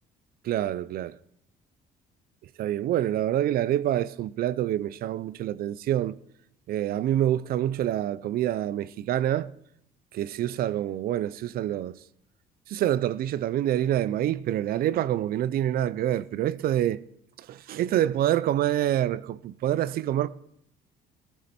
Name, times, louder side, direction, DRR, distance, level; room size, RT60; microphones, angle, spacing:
voice 1, 0.4-1.2 2.6-6.2 6.7-9.5 10.1-12.0 12.7-17.0 17.4-20.3, right 12 dB, 60° right, 0.5 m, -26 dB
17.0 x 14.0 x 4.3 m
cardioid pair, 110°, 17 cm